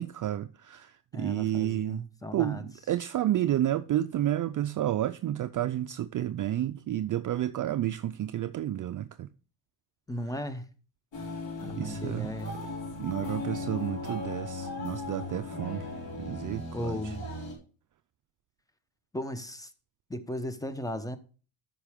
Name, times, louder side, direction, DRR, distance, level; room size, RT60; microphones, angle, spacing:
voice 1, 0.0-2.0 2.3-9.3 11.8-12.3 13.0-15.8 16.2-17.1, right 12 dB, 40° right, 0.5 m, -31 dB
voice 2, 1.1-2.7 10.1-10.7 11.6-12.5 16.7-17.3 19.1-19.7 20.1-21.2, left 1 dB, 5° left, 0.9 m, -36 dB
sound 1, 11.1-17.5, left 2 dB, 65° left, 4.7 m, -37 dB
13.0 x 5.6 x 3.6 m
cardioid pair, 105°, 49 cm